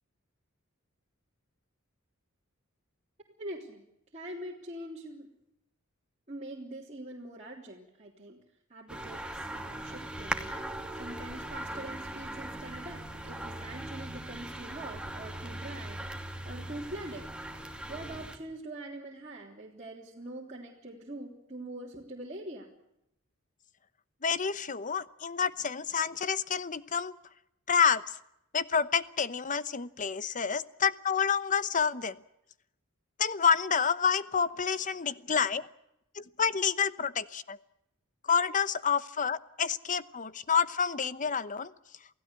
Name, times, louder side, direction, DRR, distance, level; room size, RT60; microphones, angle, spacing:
voice 1, 3.4-3.9 4.1-5.3 6.3-8.4 8.7-10.5 10.9-16.0 16.4-17.3 17.9-22.7, right 1 dB, 35° right, -4 dB, 3.5 m, -43 dB
sound 1, 8.9-18.4, right 1 dB, 5° right, 2.5 m, -39 dB
voice 2, 24.2-27.2 27.7-28.0 28.5-32.2 33.2-35.7 36.1-37.6 38.3-41.7, left 6 dB, 40° left, 15 dB, 0.9 m, -28 dB
28.5 x 16.5 x 8.2 m, 0.82 s
head